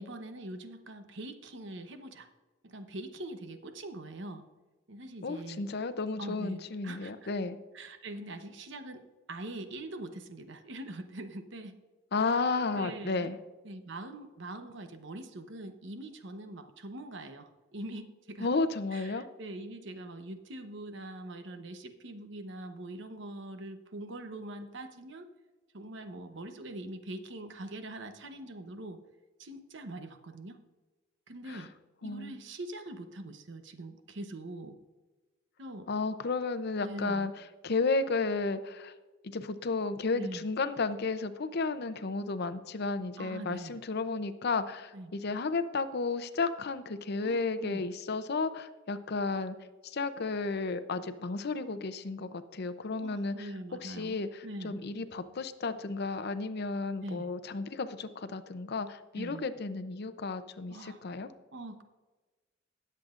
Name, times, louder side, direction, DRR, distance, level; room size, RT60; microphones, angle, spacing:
voice 1, 0.0-2.3 2.6-4.4 4.9-5.6 6.2-7.3 7.7-9.0 9.3-11.7 12.7-13.3 13.6-18.5 18.9-25.3 25.7-29.0 29.4-30.6 31.3-31.7 32.0-34.8 35.6-35.9 36.8-37.3 40.1-40.4 43.2-43.8 44.9-45.1 47.2-47.8 53.0-54.8 57.0-57.3 59.1-59.4 60.7-61.0 61.5-61.8, right 1 dB, 65° right, 8 dB, 0.9 m, -43 dB
voice 2, 5.2-7.6 12.1-13.4 18.4-19.3 31.5-31.7 32.0-32.4 35.9-37.3 37.6-38.9 39.2-49.6 49.8-53.5 53.8-61.3, left 3 dB, 55° left, 11 dB, 0.6 m, -33 dB
19.0 x 7.7 x 2.5 m, 1.2 s
head